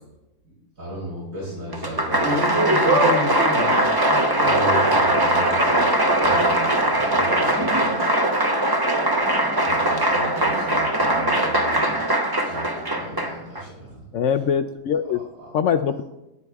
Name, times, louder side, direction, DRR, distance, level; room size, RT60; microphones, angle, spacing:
voice 1, 0.8-2.6 4.4-5.9 6.2-8.2 9.4-11.9 12.4-14.0 15.4-15.5, equal, 70° right, -7 dB, 5.7 m, -35 dB
Applause, 1.7-13.6, right 1 dB, 25° right, 0.5 m, -20 dB
voice 2, 2.2-5.0, left 1 dB, 50° right, -2 dB, 1.6 m, -30 dB
voice 3, 14.1-15.2 15.5-16.0, left 7 dB, 70° left, 9 dB, 0.7 m, -22 dB
18.5 x 11.0 x 2.3 m, 0.93 s
omnidirectional pair, 1.7 m